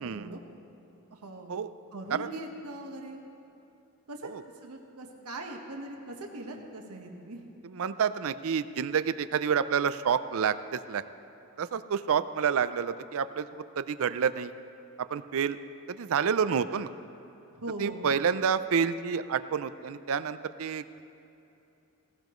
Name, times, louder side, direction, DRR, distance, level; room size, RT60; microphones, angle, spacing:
voice 1, 0.0-0.4 1.1-1.5 1.9-3.2 4.1-4.3 4.6-7.4 17.5-18.1, right 1 dB, 80° right, 2 dB, 1.3 m, -40 dB
voice 2, 7.7-11.0 11.6-14.5 15.1-15.6 15.9-16.9 17.8-21.0, right 7 dB, 65° right, 13 dB, 0.5 m, -29 dB
17.0 x 17.0 x 3.1 m, 2.9 s
head